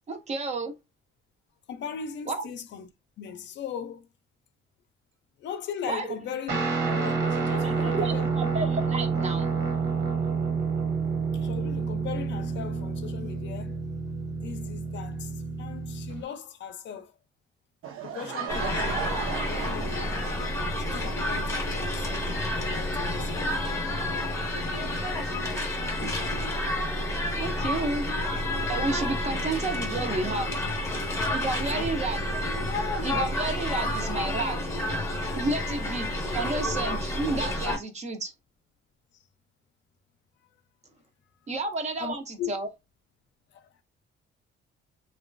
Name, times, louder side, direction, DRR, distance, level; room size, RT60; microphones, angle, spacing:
voice 1, 0.1-0.7 2.3-2.4 5.9-6.1 7.6-9.5 26.0-26.1 27.4-28.1 28.7-30.7 31.3-32.4 33.0-34.6 35.3-38.3 41.5-42.7, right 3 dB, 35° right, 0.5 m, -31 dB
voice 2, 1.7-2.9 3.2-4.1 5.4-8.4 8.8-8.9 11.3-13.8 14.3-17.1 18.0-20.2 20.8-23.6 31.6-32.1 42.0-42.5 43.5-43.8, left 8 dB, 60° left, 0.4 m, -39 dB
Guitar, 6.5-16.2, right 5 dB, 50° right, 1.0 m, -29 dB
Laughter / Crowd, 17.8-20.7, right 8 dB, 75° right, 0.7 m, -36 dB
sound 1, 18.5-37.8, left 1 dB, 15° left, 0.6 m, -29 dB
2.9 x 2.2 x 2.4 m
cardioid pair, 155°, 21 cm